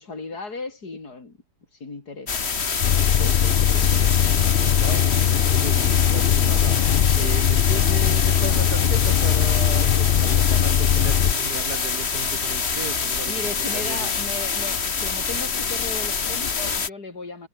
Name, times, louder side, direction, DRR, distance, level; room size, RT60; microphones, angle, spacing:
voice 1, 0.0-1.4 1.8-2.4 13.3-17.5, left 3 dB, 90° left, 4.4 m, -36 dB
sound 1, 2.3-16.9, left 5 dB, 45° left, 1.8 m, -26 dB
sound 2, 2.8-11.3, left 10 dB, 60° left, 0.6 m, -20 dB
voice 2, 2.9-14.1, right 6 dB, 90° right, 2.6 m, -36 dB
omnidirectional pair, 1.6 m